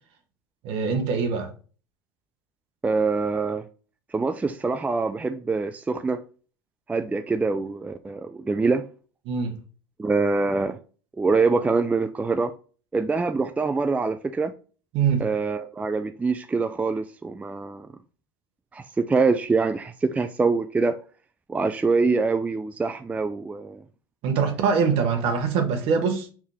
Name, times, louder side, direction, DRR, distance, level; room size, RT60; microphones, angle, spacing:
voice 1, 0.6-1.5 9.3-9.5 14.9-15.3 24.2-26.3, right 6 dB, 55° right, 1.2 m, -23 dB
voice 2, 2.8-3.6 4.1-6.2 6.9-8.8 10.0-10.8 11.2-12.5 12.9-14.5 15.2-17.9 18.7-21.0 21.5-23.8, right 4 dB, 10° right, 0.4 m, -24 dB
4.6 x 2.9 x 3.4 m
hypercardioid pair, 80°, 12 cm